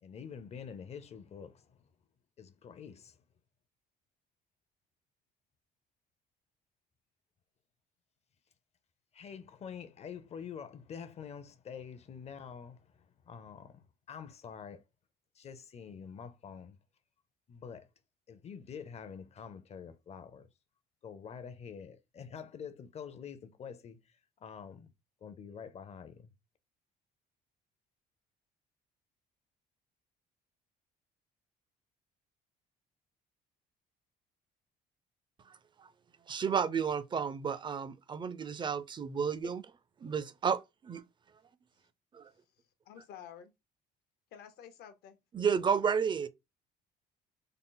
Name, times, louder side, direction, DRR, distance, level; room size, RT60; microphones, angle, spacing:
voice 1, 0.0-1.8 2.4-3.2 9.1-14.8 15.3-16.8 17.5-17.9 18.3-20.5 21.0-24.9 25.2-26.3, left 7 dB, 40° left, 0.6 m, -47 dB
voice 2, 35.5-35.9 36.3-39.6 40.0-41.0 42.1-42.3 45.3-46.3, right 6 dB, 30° right, 0.4 m, -32 dB
voice 3, 42.9-43.5 44.3-45.2, left 8 dB, 70° left, 0.8 m, -50 dB
3.7 x 2.0 x 3.8 m
cardioid pair, 110°, 17 cm